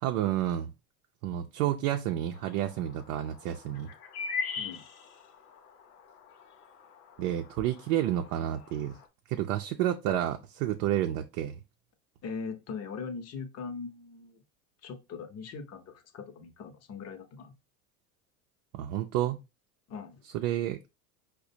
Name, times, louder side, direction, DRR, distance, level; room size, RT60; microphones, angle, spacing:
voice 1, 0.0-0.7 1.2-3.9 7.2-9.0 9.3-11.6 18.7-19.4 20.3-20.9, right 12 dB, 70° right, 0.6 m, -30 dB
sound 1, 2.3-9.1, left 5 dB, 85° left, 0.7 m, -42 dB
voice 2, 4.6-4.9 12.2-14.4 14.8-17.5 19.9-20.2, left 5 dB, 35° left, 0.7 m, -40 dB
4.8 x 2.1 x 2.6 m
hypercardioid pair, 95°, 45 cm